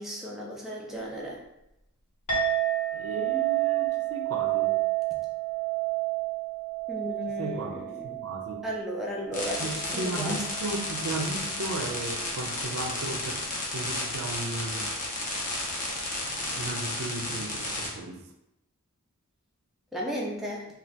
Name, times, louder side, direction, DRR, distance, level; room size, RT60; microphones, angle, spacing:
voice 1, 0.0-1.4 6.9-8.1 8.6-10.4 19.9-20.7, equal, ahead, -4 dB, 0.4 m, -35 dB
Chink clink, 2.3-11.0, right 13 dB, 75° left, 1.3 m, -30 dB
voice 2, 2.9-4.8 7.3-8.6 9.6-13.4 13.7-14.9 16.2-18.2, right 2 dB, 70° right, 3 dB, 0.4 m, -35 dB
sound 1, 9.3-17.9, left 2 dB, 35° left, 0.6 m, -33 dB
2.7 x 2.3 x 3.1 m, 0.85 s
head